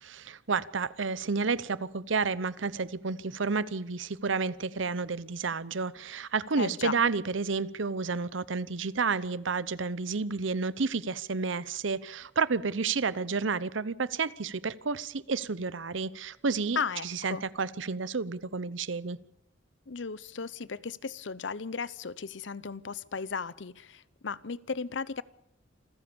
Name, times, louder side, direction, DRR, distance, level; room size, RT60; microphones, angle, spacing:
voice 1, 0.0-16.8 17.0-19.2, right 4 dB, 85° right, 0.8 m, -31 dB
voice 2, 6.6-7.0 16.8-17.4 19.9-25.2, left 5 dB, 70° left, 0.7 m, -35 dB
26.5 x 15.0 x 7.0 m
head